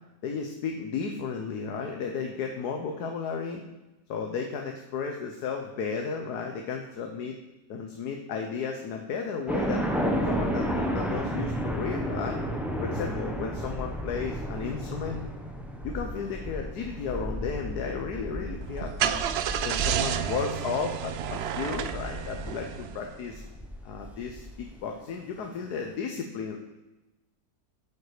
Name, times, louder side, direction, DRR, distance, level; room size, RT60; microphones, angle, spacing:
voice 1, 0.2-3.6 4.1-7.4 7.7-9.8 10.2-12.4 12.8-15.3 15.8-19.2 19.6-23.4 23.8-26.6, left 5 dB, 85° left, 3 dB, 1.4 m, -34 dB
sound 1, 9.5-24.6, equal, ahead, 0.8 m, -33 dB
Car / Engine starting, 18.6-23.3, right 9 dB, 85° right, 0.5 m, -31 dB
9.1 x 7.2 x 4.9 m, 1.0 s
omnidirectional pair, 1.7 m